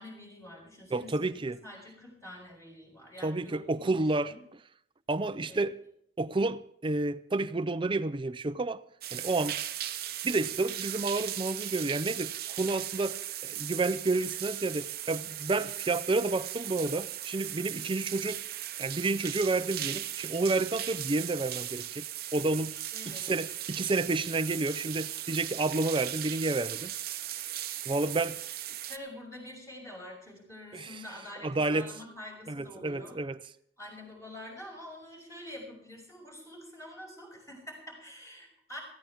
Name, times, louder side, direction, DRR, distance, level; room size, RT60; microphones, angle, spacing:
voice 1, 0.0-4.4 5.5-5.7 22.9-23.3 28.9-33.2 33.8-38.8, left 1 dB, 15° left, 5.8 m, -46 dB
voice 2, 0.9-1.6 3.2-4.3 5.1-5.8 6.2-8.8 9.1-9.6 10.2-18.4 18.8-22.1 22.3-22.7 23.1-26.9 27.9-28.4 30.7-31.0 31.4-31.9 32.5-33.4, right 2 dB, 30° right, 0.5 m, -30 dB
sound 1, 9.0-29.0, right 12 dB, 60° right, 0.8 m, -38 dB
19.5 x 15.0 x 3.6 m
head